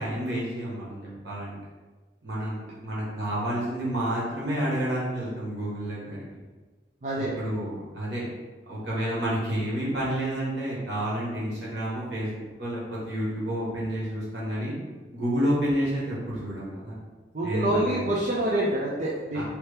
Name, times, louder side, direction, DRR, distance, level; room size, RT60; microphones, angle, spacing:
voice 1, 0.0-1.6 2.2-6.2 7.3-8.2 8.7-12.3 12.6-14.7 15.1-17.0 17.4-18.0 19.3-19.4, right 1 dB, 85° right, -7 dB, 1.3 m, -29 dB
voice 2, 7.0-7.3 17.3-19.4, right 1 dB, 45° right, -5 dB, 0.5 m, -26 dB
3.3 x 2.9 x 3.3 m, 1.3 s
head